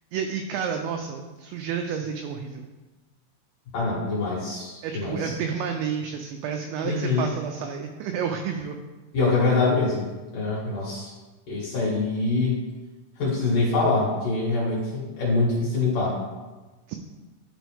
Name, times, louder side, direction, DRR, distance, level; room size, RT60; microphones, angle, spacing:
voice 1, 0.1-2.7 4.8-8.8 16.9-17.0, right 7 dB, 90° right, 4 dB, 2.5 m, -30 dB
voice 2, 3.7-5.3 6.8-7.3 9.1-10.0 10.3-11.1 11.5-12.6 13.2-16.2, left 3 dB, 55° left, -7 dB, 2.7 m, -24 dB
12.5 x 4.5 x 3.5 m, 1.2 s
omnidirectional pair, 5.8 m